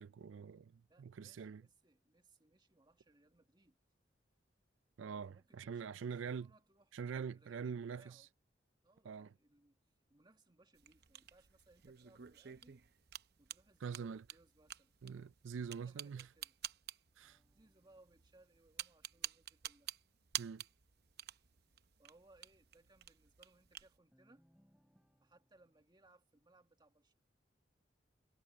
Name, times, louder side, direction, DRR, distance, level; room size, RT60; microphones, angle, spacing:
voice 1, 0.0-1.6 5.0-6.5 6.9-8.2 9.0-9.3 13.8-14.2 15.0-16.3 17.2-17.4 20.4-20.6, right 6 dB, 85° right, 0.4 m, -44 dB
voice 2, 0.9-3.8 5.1-6.9 7.3-8.3 8.8-9.8 10.1-12.8 13.4-14.9 15.7-16.6 17.5-19.9 22.0-24.4 25.2-27.1, right 2 dB, 25° right, 1.9 m, -68 dB
sound 1, 10.8-24.0, right 11 dB, 55° right, 0.8 m, -50 dB
sound 2, 17.2-19.8 24.1-25.8, equal, 5° right, 4.6 m, -75 dB
head